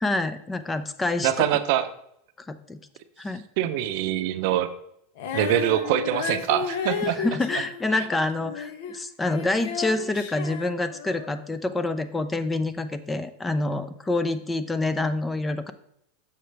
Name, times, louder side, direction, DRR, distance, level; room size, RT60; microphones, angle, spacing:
voice 1, 0.0-1.5 2.5-2.8 3.2-3.4 7.0-15.7, left 2 dB, 10° left, 12 dB, 0.5 m, -27 dB
voice 2, 1.2-1.9 3.6-4.7 5.3-7.2 8.0-8.1, right 12 dB, 60° right, 11 dB, 0.6 m, -24 dB
Female singing, 5.2-9.0 9.3-11.4, left 6 dB, 65° left, 0.9 m, -33 dB
6.8 x 6.5 x 3.3 m, 0.73 s
supercardioid pair, 120°, 0 cm